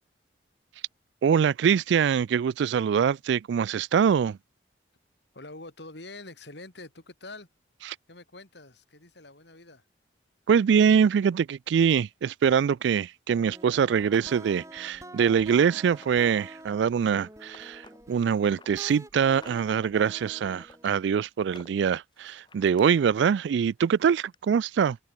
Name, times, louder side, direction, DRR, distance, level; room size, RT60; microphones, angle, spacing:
voice 1, 1.2-4.4 10.5-17.8 18.1-25.0, right 7 dB, 75° right, 0.3 m, -24 dB
voice 2, 5.3-7.5 8.1-9.9, left 2 dB, 70° left, 3.5 m, -45 dB
sound 1, 13.3-20.9, right 1 dB, 15° right, 2.6 m, -48 dB
sound 2, 13.4-13.5 14.0-15.5 15.9-16.3 16.6-18.7 19.2-19.8 20.2-21.0 21.4-22.8 23.8-23.9 24.3-24.4, left 3 dB, 25° left, 3.6 m, -52 dB
head